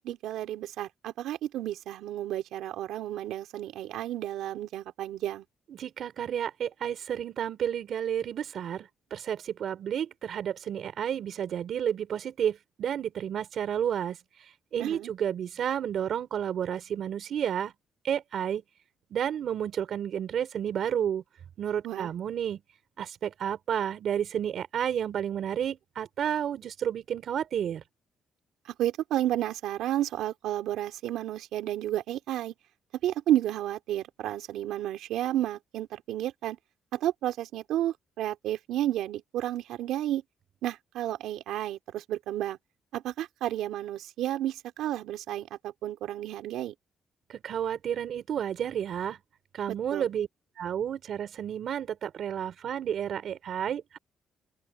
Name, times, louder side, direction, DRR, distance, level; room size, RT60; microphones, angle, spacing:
voice 1, 0.0-5.4 14.8-15.1 21.8-22.1 28.7-32.5 33.0-36.6 36.9-40.2 40.6-42.6 42.9-46.7 49.9-50.1, right 13 dB, 85° right, 2.9 m, -31 dB
voice 2, 5.7-17.7 18.0-18.6 19.1-21.2 21.6-22.6 23.0-27.8 47.3-49.2 49.5-50.3 50.6-54.0, right 9 dB, 65° right, 4.0 m, -31 dB
open air
cardioid pair, 90°, 0 cm